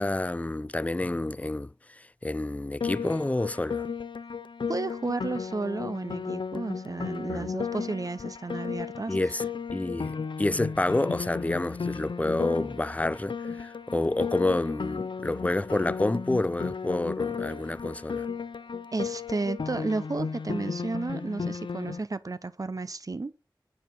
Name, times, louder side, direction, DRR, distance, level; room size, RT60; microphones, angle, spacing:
voice 1, 0.0-1.7 2.2-3.8 7.3-7.5 9.1-9.4 9.7-18.3, left 2 dB, 15° left, 0.3 m, -28 dB
Piano, 2.8-22.0, left 5 dB, 80° left, 0.5 m, -34 dB
voice 2, 4.7-9.2 18.9-23.3, right 3 dB, 50° right, 0.7 m, -32 dB
9.4 x 4.9 x 5.3 m
wide cardioid pair, 60°, 8 cm